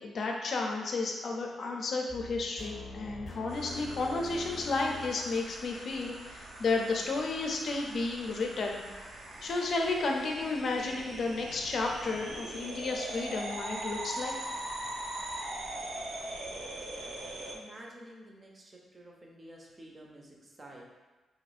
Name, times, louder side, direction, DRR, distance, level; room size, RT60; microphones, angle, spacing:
voice 1, 0.0-9.1 9.4-14.3, left 3 dB, 55° left, 1 dB, 0.5 m, -32 dB
sound 1, 2.1-5.3, left 2 dB, 20° left, 0.8 m, -44 dB
sound 2, 3.5-17.6, right 1 dB, 65° right, 0.6 m, -42 dB
voice 2, 17.5-20.9, right 1 dB, 25° right, -1 dB, 0.6 m, -50 dB
3.0 x 2.6 x 4.1 m, 1.2 s
cardioid pair, 125°, 0 cm